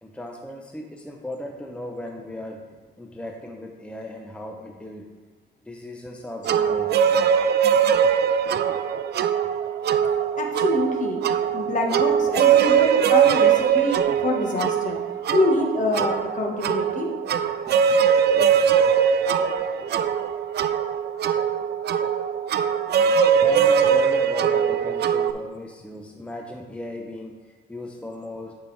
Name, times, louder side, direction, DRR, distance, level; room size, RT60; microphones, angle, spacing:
voice 1, 0.0-2.7 3.0-5.1 5.6-6.9 23.4-28.6, left 1 dB, 5° left, 1 dB, 0.7 m, -36 dB
sound 1, 6.4-25.3, right 8 dB, 55° right, 0.4 m, -21 dB
voice 2, 10.4-11.2 11.5-15.0 15.3-17.1, left 2 dB, 40° left, 1 dB, 1.4 m, -26 dB
9.7 x 5.4 x 3.3 m, 1.4 s
cardioid pair, 90°, 20 cm